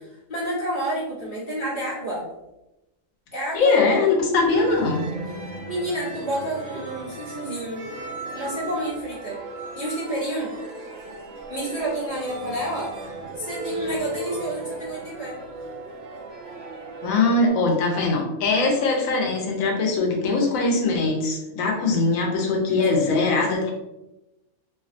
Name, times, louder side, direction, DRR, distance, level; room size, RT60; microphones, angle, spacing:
voice 1, 0.0-2.2 3.3-3.8 5.7-7.8 8.3-9.4 9.8-10.5 11.5-12.9 13.4-15.4 22.9-23.4, right 1 dB, 45° left, -8 dB, 0.9 m, -29 dB
voice 2, 3.5-5.0 17.0-23.7, left 3 dB, 80° left, 0 dB, 1.0 m, -21 dB
sound 1, 4.5-17.5, right 2 dB, 70° right, 0.9 m, -36 dB
2.7 x 2.2 x 2.4 m, 0.97 s
omnidirectional pair, 1.4 m